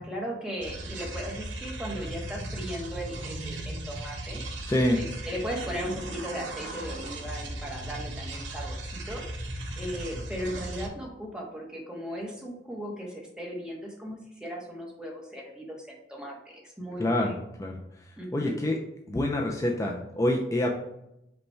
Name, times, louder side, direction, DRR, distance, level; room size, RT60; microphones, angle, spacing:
voice 1, 0.0-4.4 4.9-9.2 9.8-17.3 18.2-18.6, equal, 5° right, -1 dB, 0.8 m, -37 dB
sound 1, 0.6-10.9, right 1 dB, 80° right, 0.8 m, -37 dB
voice 2, 4.7-5.0 17.0-17.3 17.6-17.8 18.3-18.8 19.1-20.7, left 1 dB, 15° left, 0 dB, 0.3 m, -26 dB
5.2 x 2.2 x 4.4 m, 0.85 s
head